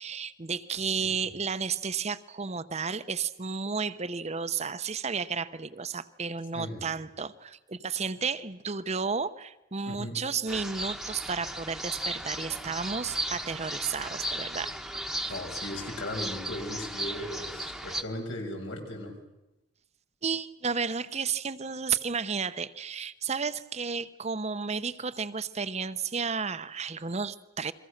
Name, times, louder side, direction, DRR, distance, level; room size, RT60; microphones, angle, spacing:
voice 1, 0.0-14.8 20.2-27.7, right 5 dB, 35° right, 13 dB, 0.9 m, -32 dB
voice 2, 9.8-10.2 15.3-19.1, left 1 dB, 90° left, 2 dB, 6.6 m, -37 dB
sound 1, 10.5-18.0, right 1 dB, ahead, 1.2 m, -36 dB
30.0 x 23.0 x 6.6 m, 0.93 s
head